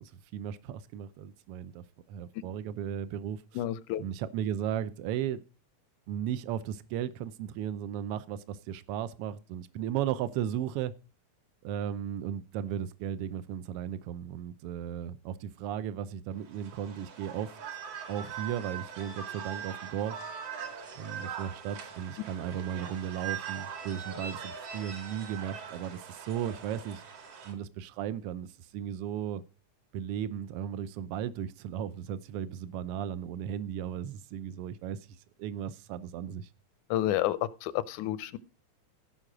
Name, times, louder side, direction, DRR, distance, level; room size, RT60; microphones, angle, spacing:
voice 1, 0.0-3.4 4.0-5.4 6.1-10.9 11.6-17.5 18.1-20.2 21.0-27.0 27.4-28.5 28.7-29.4 29.9-35.0 35.4-36.5, right 10 dB, 75° right, 1.4 m, -35 dB
voice 2, 3.6-4.0 36.9-38.4, left 13 dB, 85° left, 2.1 m, -30 dB
sound 1, 16.4-27.5, right 7 dB, 55° right, 3.0 m, -41 dB
15.5 x 5.7 x 4.9 m
omnidirectional pair, 3.4 m